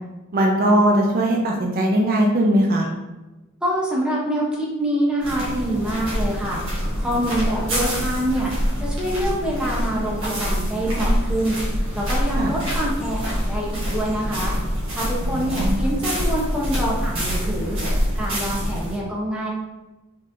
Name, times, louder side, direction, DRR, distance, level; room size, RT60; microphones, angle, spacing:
voice 1, 0.3-2.9 12.4-12.5 15.2-15.8, right 1 dB, 45° right, 0 dB, 0.5 m, -19 dB
voice 2, 3.6-6.6 7.0-8.5 8.8-14.5 15.0-19.5, equal, 5° right, -4 dB, 0.8 m, -25 dB
sound 1, 5.2-19.0, equal, 70° right, 1.4 m, -25 dB
4.3 x 3.2 x 2.6 m, 1.1 s
head